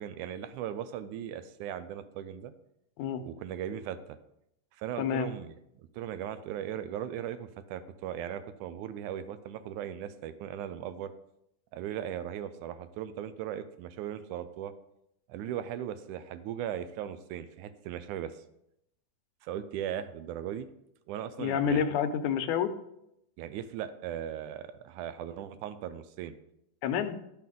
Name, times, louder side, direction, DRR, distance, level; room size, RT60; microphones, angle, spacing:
voice 1, 0.0-2.5 3.2-4.2 4.8-11.1 11.7-14.7 15.3-18.3 19.4-20.7 21.1-21.8 23.4-26.4, right 10 dB, 80° right, 12 dB, 2.1 m, -38 dB
voice 2, 5.0-5.3 21.4-22.7 26.8-27.2, left 8 dB, 80° left, 9 dB, 2.1 m, -28 dB
12.5 x 5.9 x 3.7 m, 0.80 s
omnidirectional pair, 3.5 m